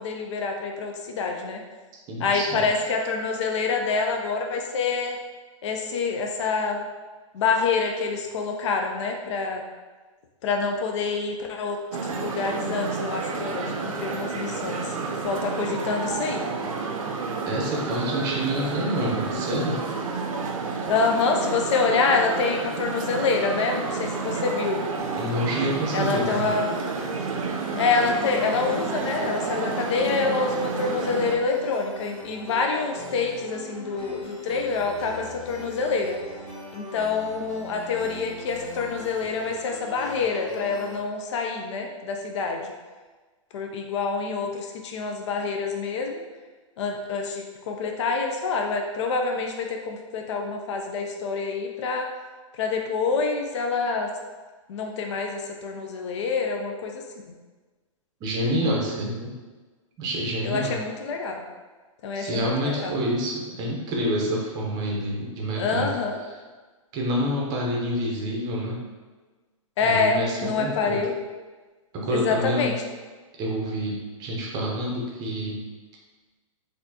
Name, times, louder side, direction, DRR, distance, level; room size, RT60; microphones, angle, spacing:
voice 1, 0.0-1.6 2.2-5.2 5.6-6.9 7.3-9.6 10.4-11.8 12.0-14.9 15.2-16.5 20.9-24.9 25.9-26.7 27.8-36.2 36.7-42.7 43.5-46.2 46.8-52.1 52.6-54.1 54.7-57.0 60.4-61.4 62.0-62.9 65.6-66.2 69.8-71.1 72.1-72.8, left 4 dB, 60° left, 2 dB, 0.5 m, -26 dB
voice 2, 2.1-2.6 17.5-19.8 25.2-26.5 58.2-59.4 60.0-60.8 62.1-66.0 66.9-68.8 69.8-71.1 71.9-72.7 73.4-75.6, equal, 20° right, -2 dB, 0.6 m, -27 dB
sound 1, 11.9-31.4, right 4 dB, 80° right, 0.5 m, -30 dB
sound 2, 25.0-41.0, equal, 5° left, 1.2 m, -41 dB
4.0 x 2.6 x 2.7 m, 1.3 s
hypercardioid pair, 155°, 17 cm